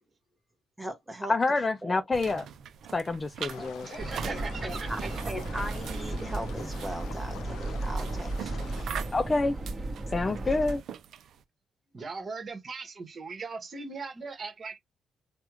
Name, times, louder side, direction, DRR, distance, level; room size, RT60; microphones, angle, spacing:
voice 1, 0.8-1.4 1.8-2.0 3.6-3.7 4.2-9.1, right 1 dB, 5° right, 1.4 m, -39 dB
voice 2, 1.3-2.5 2.9-3.9 9.1-9.6 10.1-10.8, left 3 dB, 30° left, 0.4 m, -27 dB
sound 1, 2.1-11.4, right 8 dB, 70° right, 0.5 m, -43 dB
sound 2, 3.5-8.8, left 7 dB, 80° left, 0.6 m, -46 dB
voice 3, 3.8-5.2 11.9-14.8, right 4 dB, 40° right, 1.4 m, -39 dB
sound 3, 4.0-10.8, right 2 dB, 25° right, 1.5 m, -35 dB
3.4 x 2.3 x 3.0 m
cardioid pair, 90°, 0 cm